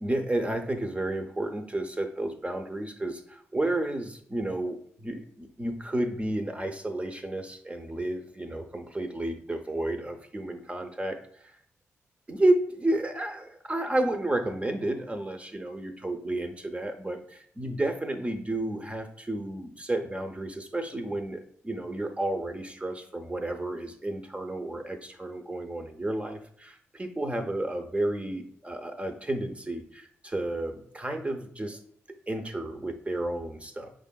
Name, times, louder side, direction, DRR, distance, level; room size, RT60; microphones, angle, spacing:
voice 1, 0.0-11.2 12.3-31.8 32.1-33.9, right 1 dB, 20° right, 6 dB, 0.6 m, -31 dB
5.1 x 3.6 x 2.2 m, 0.65 s
supercardioid pair, 45°, 6 cm